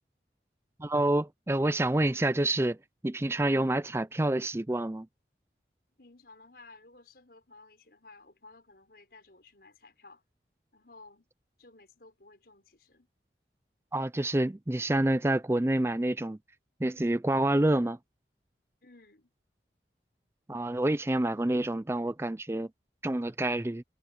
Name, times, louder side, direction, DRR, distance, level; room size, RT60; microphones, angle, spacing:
voice 1, 0.8-2.8 3.0-5.1 13.9-16.4 16.8-18.0 20.5-22.7 23.0-23.8, right 1 dB, 15° right, 0.4 m, -27 dB
voice 2, 6.0-10.2 10.7-11.3 11.6-13.1 18.8-19.3, left 3 dB, 60° left, 5.3 m, -55 dB
head